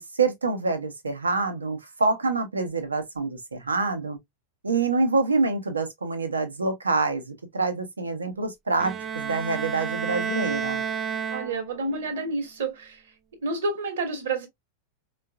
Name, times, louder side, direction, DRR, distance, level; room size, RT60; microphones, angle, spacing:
voice 1, 0.0-4.2 4.6-10.8, right 3 dB, 75° right, 0.8 m, -26 dB
Bowed string instrument, 8.8-12.0, right 7 dB, 25° right, 0.3 m, -31 dB
voice 2, 11.3-13.0 13.4-14.5, right 3 dB, 60° right, 1.1 m, -29 dB
4.5 x 2.4 x 2.2 m
figure-of-eight pair, 90°, 0 cm